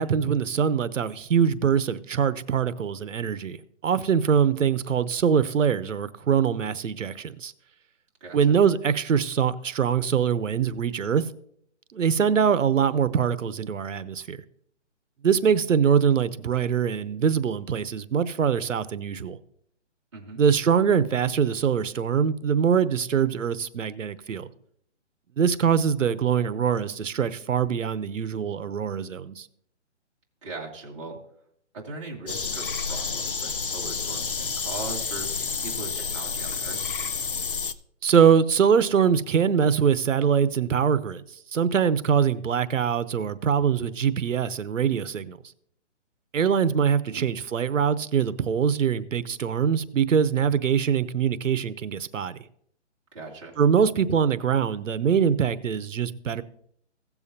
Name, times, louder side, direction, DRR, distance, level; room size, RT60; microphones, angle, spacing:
voice 1, 0.0-3.6 3.8-7.5 8.3-11.3 11.9-14.4 15.2-19.4 20.4-24.5 25.4-29.5 38.0-41.2 41.5-45.4 46.3-52.4 53.6-56.4, right 7 dB, 90° right, 0.9 m, -23 dB
voice 2, 8.2-8.6 20.1-20.4 30.4-31.2 31.7-35.3 35.6-36.8 47.1-47.3 53.1-53.5, right 3 dB, 25° right, 2.0 m, -39 dB
sound 1, 32.3-37.7, left 5 dB, 45° left, 0.5 m, -30 dB
16.5 x 7.1 x 2.8 m
hypercardioid pair, 175°, 37 cm